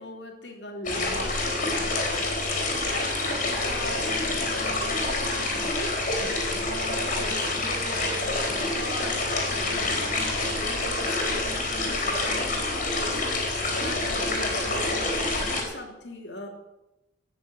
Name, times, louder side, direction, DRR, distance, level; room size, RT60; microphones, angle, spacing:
voice 1, 0.0-1.8 2.0-16.5, left 1 dB, 65° left, 2 dB, 2.9 m, -40 dB
sound 1, 0.8-15.6, left 2 dB, 45° left, 4.1 m, -27 dB
17.0 x 7.2 x 7.8 m, 0.95 s
head